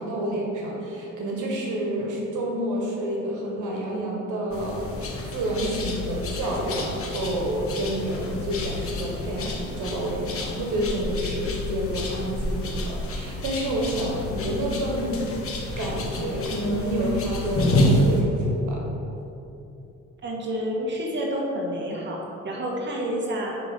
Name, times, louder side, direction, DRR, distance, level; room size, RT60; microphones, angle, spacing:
voice 1, 0.0-18.8, right 1 dB, 80° right, -2 dB, 1.5 m, -29 dB
sound 1, 4.5-18.2, left 1 dB, 50° left, 1.3 m, -29 dB
voice 2, 20.2-23.5, equal, 40° right, -2 dB, 1.5 m, -29 dB
9.4 x 3.8 x 5.3 m, 2.9 s
cardioid pair, 90°, 30 cm